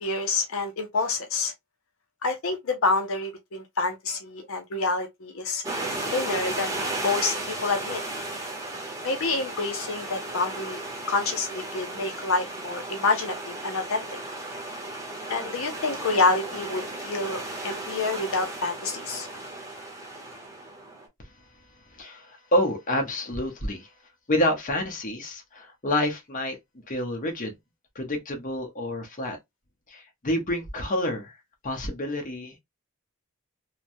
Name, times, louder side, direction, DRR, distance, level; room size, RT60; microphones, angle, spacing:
voice 1, 0.0-1.5 2.2-5.6 6.1-7.4 7.6-8.0 9.0-10.8 11.1-14.2 15.3-19.3, left 3 dB, 70° left, 0.5 m, -27 dB
sound 1, 5.6-21.1, right 2 dB, 15° right, 0.8 m, -35 dB
voice 2, 21.9-23.9 24.3-26.6 26.9-27.5 27.9-29.4 29.9-31.4 31.6-32.6, left 1 dB, 40° left, 0.9 m, -28 dB
3.2 x 2.1 x 2.5 m
head